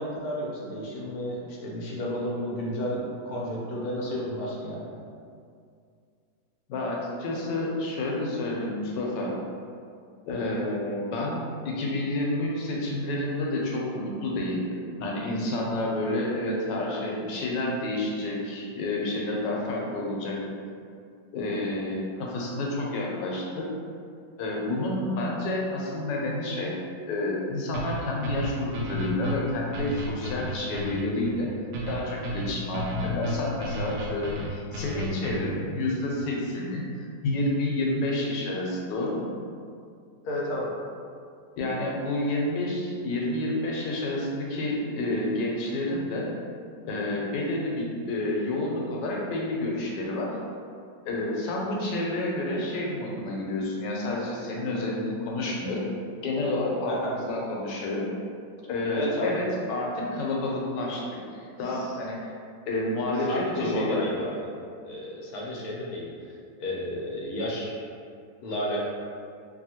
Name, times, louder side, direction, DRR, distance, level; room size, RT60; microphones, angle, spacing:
voice 1, 0.0-4.9 40.2-40.7 56.8-57.2 58.9-59.4 61.6-61.9 63.3-64.5 64.8-66.3 66.6-67.8 68.4-68.8, equal, 70° left, -4 dB, 1.0 m, -32 dB
voice 2, 6.7-9.4 10.3-14.6 15.0-20.4 21.3-23.7 24.4-26.7 27.1-31.5 31.9-36.8 37.2-39.3 41.6-46.3 46.8-50.4 51.0-55.9 56.2-58.1 58.7-62.3 62.7-64.1, left 1 dB, 85° left, -3 dB, 1.3 m, -29 dB
sound 1, 27.7-35.6, equal, 80° right, 1.2 m, -33 dB
2.8 x 2.7 x 2.7 m, 2.3 s
omnidirectional pair, 1.8 m